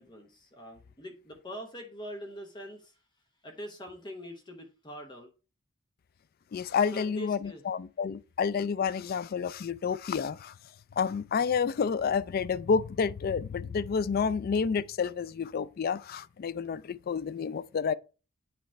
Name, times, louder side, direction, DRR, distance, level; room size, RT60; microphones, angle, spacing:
voice 1, 0.0-3.0 3.4-5.3 6.9-7.7, equal, 20° left, 1.0 m, -43 dB
voice 2, 6.5-10.5 11.0-17.9, left 6 dB, 45° left, 0.3 m, -29 dB
8.6 x 3.1 x 4.4 m
head